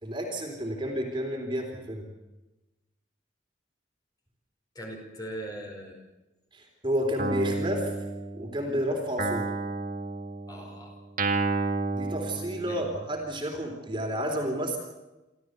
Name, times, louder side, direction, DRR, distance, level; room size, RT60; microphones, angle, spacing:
voice 1, 0.0-2.0 6.5-7.9 8.3-9.5 11.9-14.8, equal, 25° right, 2 dB, 3.8 m, -31 dB
voice 2, 4.7-6.0 10.5-11.0 12.6-12.8, right 1 dB, 20° left, 1 dB, 4.8 m, -40 dB
Guitar, 7.2-8.7 9.2-13.1, right 3 dB, 45° right, 2.0 m, -31 dB
27.0 x 14.0 x 8.2 m, 1.0 s
head